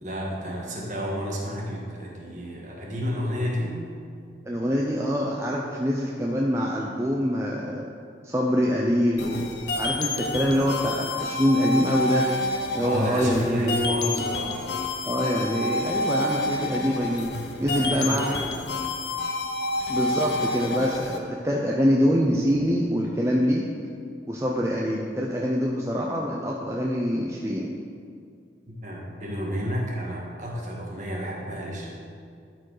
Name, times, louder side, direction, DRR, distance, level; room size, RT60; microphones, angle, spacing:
voice 1, 0.0-3.9 12.8-14.6 17.6-18.5 28.7-31.9, equal, 45° right, -3 dB, 1.6 m, -31 dB
voice 2, 4.5-7.8 8.2-12.3 12.7-14.2 15.0-17.3 17.6-18.6 19.9-23.7 24.3-27.7, equal, 15° right, -2 dB, 0.5 m, -25 dB
sound 1, 9.2-21.2, left 2 dB, 80° left, 0.8 m, -29 dB
12.5 x 4.6 x 4.8 m, 2.3 s
head